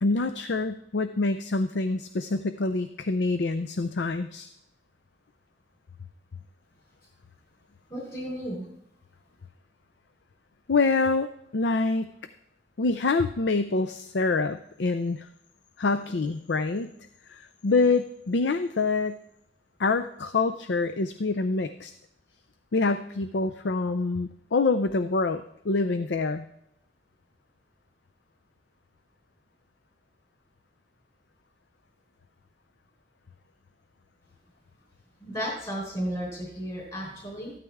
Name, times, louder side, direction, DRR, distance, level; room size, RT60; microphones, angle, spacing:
voice 1, 0.0-4.5 10.7-12.1 12.8-15.3 15.8-16.9 17.3-19.2 19.8-21.9 22.7-26.5, left 3 dB, 70° left, 10 dB, 0.5 m, -26 dB
voice 2, 7.9-8.6 35.2-37.5, equal, 30° left, -3 dB, 4.0 m, -33 dB
14.5 x 12.5 x 3.6 m, 0.76 s
head